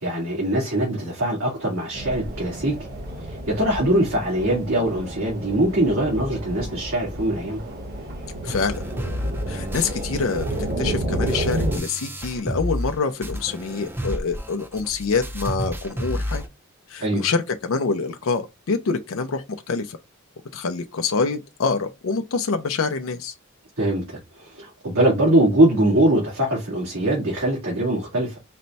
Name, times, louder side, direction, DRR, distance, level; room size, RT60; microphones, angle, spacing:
voice 1, 0.0-2.8 3.2-7.6 17.0-17.3 23.8-28.4, right 1 dB, 70° right, 1.8 m, -22 dB
sound 1, 1.9-11.8, right 1 dB, 45° right, 1.1 m, -31 dB
voice 2, 8.4-8.8 9.5-10.4 10.8-16.4 16.9-20.0 20.5-23.3, left 4 dB, 60° left, 0.5 m, -26 dB
sound 2, 8.5-12.9 13.2-16.5, equal, 10° right, 0.5 m, -31 dB
4.1 x 2.2 x 4.0 m
head